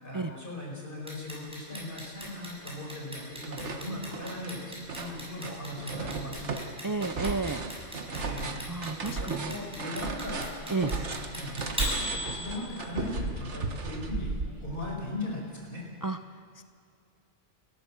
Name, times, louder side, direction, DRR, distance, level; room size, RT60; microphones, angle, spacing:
voice 1, 0.0-6.7 8.1-8.5 9.0-11.7 11.9-14.3 14.6-15.8, left 1 dB, 50° left, -2 dB, 5.4 m, -38 dB
Clock, 1.1-13.0, equal, 5° right, 6.7 m, -37 dB
sound 1, 1.8-1.9 2.2-3.0 3.2-14.9, right 3 dB, 75° right, 1.7 m, -36 dB
voice 2, 6.8-7.6 8.7-9.6 10.7-10.9 16.0-16.2 16.6-16.7, right 3 dB, 30° right, 9 dB, 0.3 m, -31 dB
30.0 x 12.0 x 7.5 m, 2.3 s
omnidirectional pair, 1.2 m